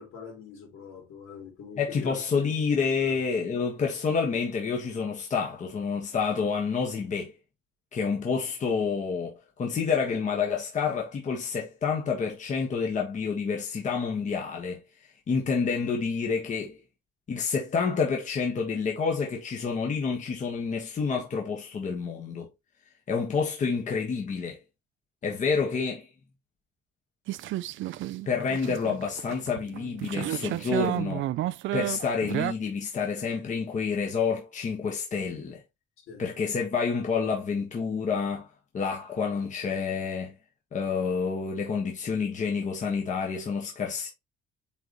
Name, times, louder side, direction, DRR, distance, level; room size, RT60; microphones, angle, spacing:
voice 1, 0.0-2.2 3.0-3.2 8.0-8.2 36.0-36.3, left 5 dB, 75° left, 4.0 m, -44 dB
voice 2, 1.8-7.3 7.9-14.8 15.3-16.8 17.3-22.5 23.1-24.6 25.2-26.1 28.3-31.2 31.7-35.6 36.2-40.4 40.7-44.1, left 5 dB, 35° left, 1.4 m, -28 dB
sound 1, 27.3-32.5, right 14 dB, 65° right, 0.5 m, -32 dB
9.1 x 4.0 x 3.0 m
cardioid pair, 160°, 21 cm